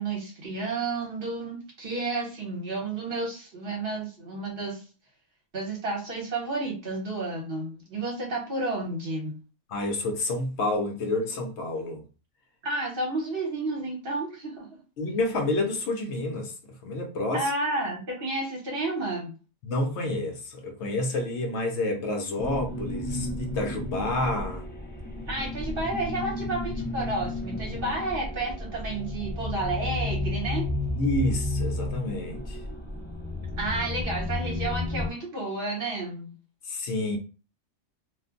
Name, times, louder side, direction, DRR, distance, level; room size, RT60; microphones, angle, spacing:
voice 1, 0.0-4.8 5.5-9.4 12.6-14.7 17.3-19.4 25.3-30.6 33.6-36.3, right 2 dB, 50° right, 1.1 m, -31 dB
voice 2, 9.7-12.0 15.0-16.5 16.8-17.5 19.6-24.7 31.0-32.6 36.7-37.2, left 2 dB, 65° left, 0.9 m, -29 dB
sound 1, 22.4-35.1, left 2 dB, 10° left, 0.5 m, -32 dB
2.5 x 2.2 x 3.7 m
omnidirectional pair, 1.3 m